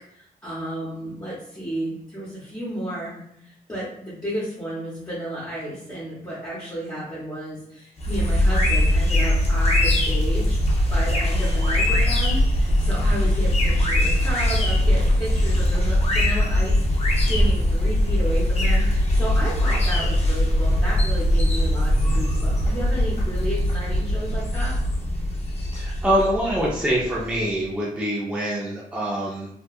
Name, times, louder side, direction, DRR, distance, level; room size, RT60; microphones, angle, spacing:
voice 1, 0.1-10.6 10.9-24.8, right 1 dB, 20° left, -10 dB, 0.8 m, -32 dB
sound 1, 8.0-27.4, left 1 dB, 45° left, 0.5 m, -21 dB
voice 2, 25.7-29.5, equal, 10° right, -6 dB, 0.4 m, -24 dB
2.7 x 2.3 x 2.3 m, 0.74 s
wide cardioid pair, 170°, 15 cm